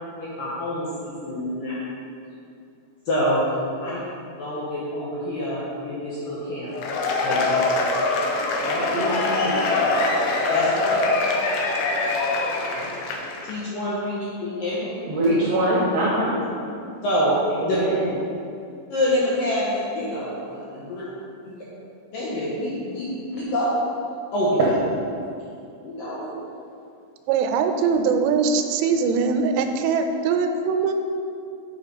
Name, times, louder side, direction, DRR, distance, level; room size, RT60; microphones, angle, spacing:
voice 1, 0.2-1.7 3.1-4.0 4.4-6.7 7.2-7.7 10.5-11.1 12.7-12.9 13.5-14.9 17.0-17.4 17.7-17.8 18.9-21.0 21.5-21.6 22.1-23.7 24.3-24.6 25.8-26.4, equal, 70° left, -8 dB, 2.2 m, -26 dB
Cheering / Applause / Crowd, 6.7-13.5, left 3 dB, 85° left, 2.1 m, -23 dB
voice 2, 8.6-10.0 15.0-16.4 17.5-18.2, right 1 dB, 70° right, -6 dB, 2.1 m, -24 dB
voice 3, 27.3-30.9, right 5 dB, 90° right, 6 dB, 3.1 m, -22 dB
8.1 x 5.7 x 5.2 m, 2.5 s
omnidirectional pair, 5.5 m